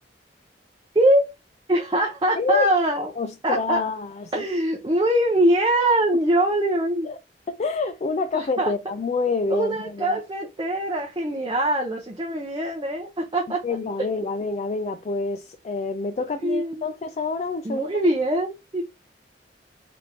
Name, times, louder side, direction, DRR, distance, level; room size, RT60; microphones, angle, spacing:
voice 1, 0.9-1.3 1.7-3.1 3.4-3.8 4.3-7.1 8.3-8.7 9.5-13.6 16.4-16.8 17.6-18.9, right 1 dB, 25° right, 0.6 m, -23 dB
voice 2, 2.4-2.7 3.2-4.5 7.0-7.2 7.5-10.2 13.6-18.0, left 3 dB, 40° left, 0.3 m, -27 dB
3.4 x 2.9 x 3.7 m
head